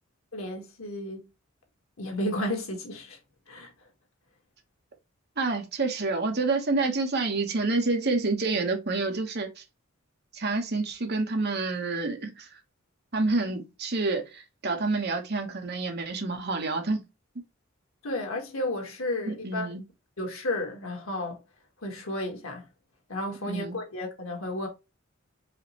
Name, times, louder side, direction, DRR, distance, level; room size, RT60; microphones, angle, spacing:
voice 1, 0.3-1.3 2.0-3.2 3.5-3.7 18.0-19.7 20.2-21.4 21.8-22.6 23.1-24.7, left 1 dB, 90° left, 1.6 m, -32 dB
voice 2, 5.4-9.6 10.3-12.5 13.1-17.1 19.2-19.9 23.5-23.8, right 3 dB, 55° right, 1.2 m, -28 dB
4.9 x 3.0 x 3.0 m
head